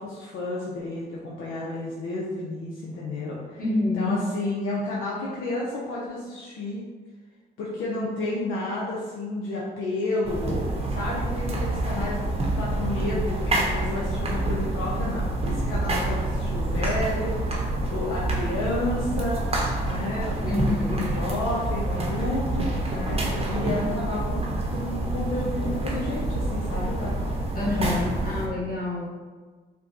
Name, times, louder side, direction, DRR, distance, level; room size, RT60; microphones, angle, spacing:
voice 1, 0.0-3.6 3.9-6.9 7.6-19.4 19.8-27.2, left 2 dB, 70° left, -5 dB, 0.6 m, -31 dB
voice 2, 3.6-4.1 20.4-21.1 27.5-29.1, left 2 dB, 45° left, -5 dB, 1.3 m, -27 dB
sound 1, 10.2-28.5, right 2 dB, 30° right, 0.8 m, -27 dB
4.3 x 2.2 x 2.7 m, 1.4 s
supercardioid pair, 65°, 21 cm